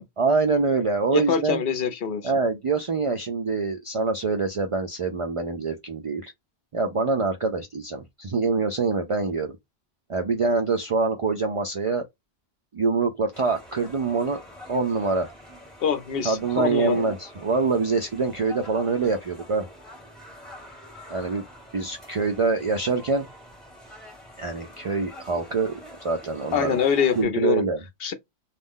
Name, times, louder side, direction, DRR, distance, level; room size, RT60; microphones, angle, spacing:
voice 1, 0.2-1.6 2.2-6.3 6.7-9.6 10.1-12.0 12.7-14.4 14.7-15.3 16.2-19.7 21.1-21.4 21.7-23.3 24.4-26.8 27.2-27.8, right 4 dB, 55° right, 0.3 m, -25 dB
voice 2, 1.1-2.3 15.8-17.0 26.5-27.7 28.0-28.1, left 7 dB, 65° left, 0.8 m, -24 dB
sound 1, 13.3-27.2, left 1 dB, ahead, 1.1 m, -46 dB
2.4 x 2.1 x 3.5 m
omnidirectional pair, 1.1 m